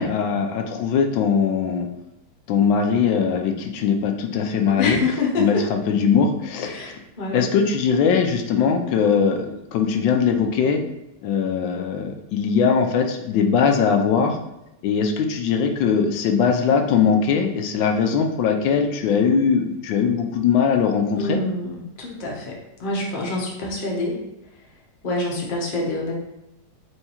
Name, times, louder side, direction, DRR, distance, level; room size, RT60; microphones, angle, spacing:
voice 1, 0.0-1.9 2.5-5.0 5.4-7.0 7.3-10.8 11.2-14.4 14.8-21.4, left 6 dB, 90° left, 4 dB, 1.3 m, -20 dB
voice 2, 4.8-5.6 6.6-7.5 21.1-24.2 25.0-26.1, left 3 dB, 50° left, -2 dB, 0.6 m, -26 dB
4.6 x 2.7 x 2.9 m, 0.91 s
omnidirectional pair, 2.0 m